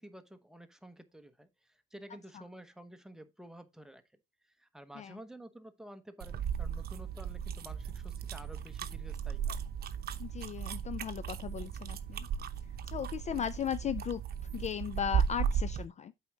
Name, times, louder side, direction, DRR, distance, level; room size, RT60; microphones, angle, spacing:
voice 1, 0.0-4.0 4.6-9.6, right 1 dB, 5° right, 1.0 m, -51 dB
sound 1, 6.2-15.9, right 8 dB, 50° right, 0.8 m, -36 dB
voice 2, 10.2-12.3 12.9-14.2 14.5-16.1, left 8 dB, 35° left, 0.4 m, -37 dB
8.1 x 4.8 x 4.0 m
cardioid pair, 125°, 20 cm